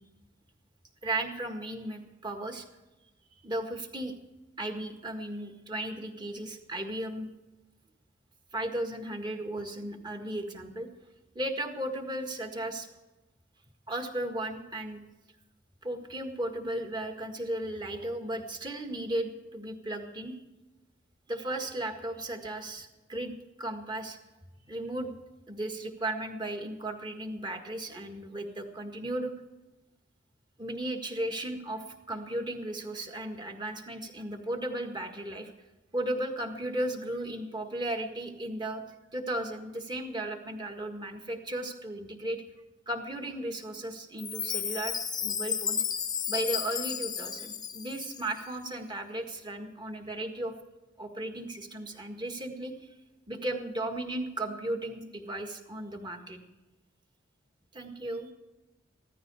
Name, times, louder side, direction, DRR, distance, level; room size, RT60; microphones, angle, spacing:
voice 1, 1.0-2.7 3.4-4.1 4.6-7.3 8.5-10.9 11.4-12.9 13.9-15.0 15.8-20.4 21.3-24.2 24.7-25.2 25.5-29.3 30.6-35.5 35.9-38.8 39.1-42.4 42.9-45.0 45.2-45.8 46.3-50.6 51.0-52.9 53.3-56.4 57.7-58.3, right 1 dB, 25° right, 4 dB, 1.7 m, -35 dB
Chime, 44.2-48.4, left 8 dB, 20° left, 0.7 m, -33 dB
16.0 x 13.5 x 4.8 m, 1.1 s
head